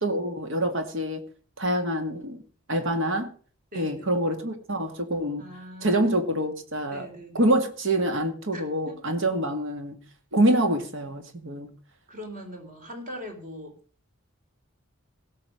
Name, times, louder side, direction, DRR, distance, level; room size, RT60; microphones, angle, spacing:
voice 1, 0.0-1.2 1.6-2.4 2.7-3.3 3.7-5.5 5.8-7.1 7.3-10.0 10.3-11.7, right 1 dB, 60° right, 2.1 m, -26 dB
voice 2, 3.7-4.2 5.4-6.1 6.9-7.5 8.5-9.0 12.1-13.7, equal, 40° right, 3.7 m, -41 dB
17.0 x 6.6 x 6.3 m
head